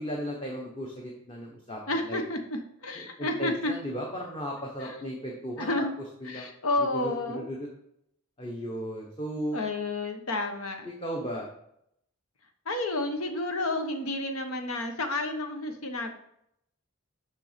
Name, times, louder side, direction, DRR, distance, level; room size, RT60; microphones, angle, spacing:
voice 1, 0.0-1.8 2.1-2.2 3.0-5.7 6.2-6.5 6.8-7.7 8.4-9.6 10.8-11.5, equal, 25° left, -1 dB, 1.0 m, -35 dB
voice 2, 1.9-3.7 4.8-5.0 5.6-5.9 6.2-7.5 9.5-10.9 12.6-16.1, left 2 dB, 80° left, 5 dB, 1.1 m, -30 dB
6.8 x 5.6 x 5.0 m, 0.75 s
head